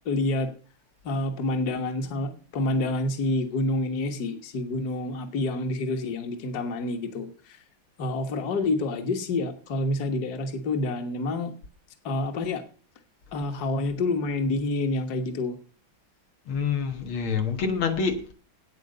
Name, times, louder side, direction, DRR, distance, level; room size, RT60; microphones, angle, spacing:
voice 1, 0.1-0.5 1.0-7.6 8.0-11.5 12.0-12.6 13.3-15.6, left 2 dB, 50° left, 1.8 m, -28 dB
voice 2, 16.5-18.3, left 5 dB, 90° left, 2.3 m, -27 dB
9.2 x 8.8 x 6.6 m
omnidirectional pair, 2.2 m